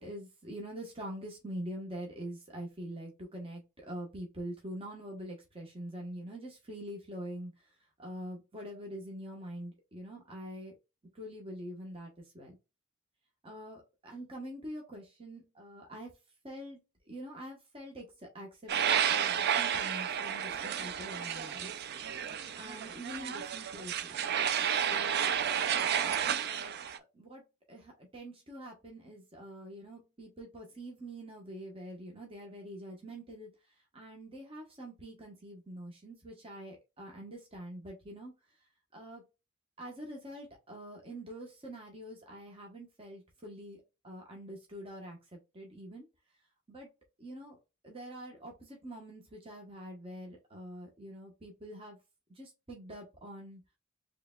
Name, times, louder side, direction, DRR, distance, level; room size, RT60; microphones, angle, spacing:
voice 1, 0.0-7.5 8.0-10.8 11.1-12.5 13.4-16.1 16.4-16.8 17.1-21.7 22.5-24.1 24.8-25.3 26.4-26.8 27.1-27.4 27.7-33.5 33.9-38.3 38.9-39.2 39.8-46.1 46.7-46.9 47.2-47.6 47.8-52.0 52.3-53.6, equal, 30° right, 0 dB, 1.1 m, -45 dB
sound 1, 18.7-27.0, right 8 dB, 50° right, 0.4 m, -31 dB
4.8 x 3.2 x 2.3 m, 0.26 s
head